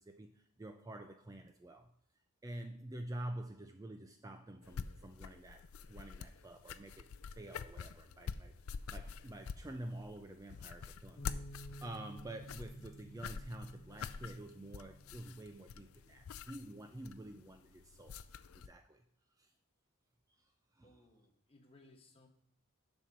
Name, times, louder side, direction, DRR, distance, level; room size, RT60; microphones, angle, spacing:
voice 1, 0.0-1.9 2.4-8.5 8.9-18.2 18.5-19.0 19.4-19.5 20.4-20.5 20.8-21.0, right 1 dB, 15° right, 6 dB, 0.4 m, -48 dB
sound 1, 4.6-18.7, left 6 dB, 75° left, 0.4 m, -47 dB
Bass guitar, 11.2-17.4, right 1 dB, 60° left, 1.3 m, -54 dB
voice 2, 20.8-22.3, left 2 dB, 25° left, 3 dB, 1.2 m, -63 dB
7.5 x 5.3 x 6.0 m, 0.66 s
head